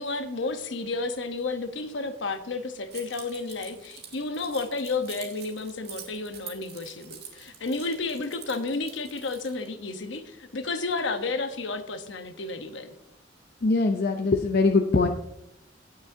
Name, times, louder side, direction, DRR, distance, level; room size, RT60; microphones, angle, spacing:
voice 1, 0.0-12.9, left 3 dB, 70° left, 8 dB, 0.9 m, -32 dB
Keys jangling, 2.9-9.7, right 8 dB, 60° right, 1.8 m, -46 dB
voice 2, 13.6-15.1, left 3 dB, 55° left, 4 dB, 0.6 m, -22 dB
17.5 x 6.2 x 2.7 m, 0.80 s
head